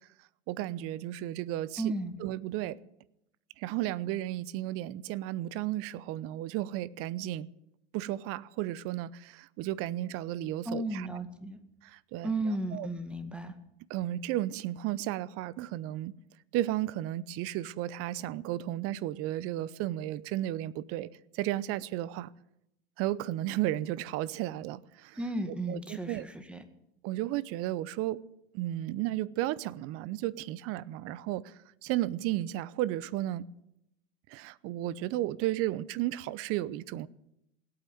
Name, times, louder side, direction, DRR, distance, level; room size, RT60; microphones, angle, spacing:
voice 1, 0.5-1.9 2.2-2.8 3.6-7.5 7.9-11.1 11.8-12.9 13.9-16.1 16.5-22.3 23.0-25.2 25.7-26.3 27.0-28.2 28.5-31.5 31.8-33.4 34.3-37.1, right 14 dB, 45° right, 0.8 m, -33 dB
voice 2, 1.8-2.2 10.7-11.6 12.2-13.5 25.1-26.6, right 2 dB, 5° right, 2.0 m, -34 dB
17.5 x 8.9 x 9.2 m
hypercardioid pair, 100°, 32 cm